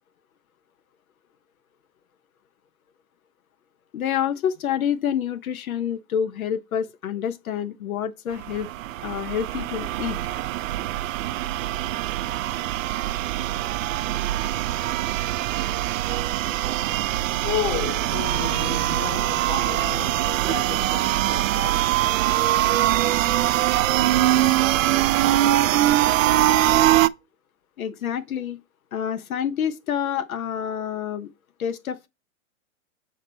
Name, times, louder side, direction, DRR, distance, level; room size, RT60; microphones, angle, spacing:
voice 1, 3.9-8.7 9.0-10.2 27.8-28.6 28.9-31.3 31.6-32.1, left 9 dB, 85° left, 0.8 m, -27 dB
sound 1, 8.4-27.1, right 14 dB, 70° right, 0.5 m, -23 dB
voice 2, 17.4-22.0, left 10 dB, 35° left, 1.2 m, -32 dB
7.3 x 4.1 x 4.1 m
hypercardioid pair, 120°, 41 cm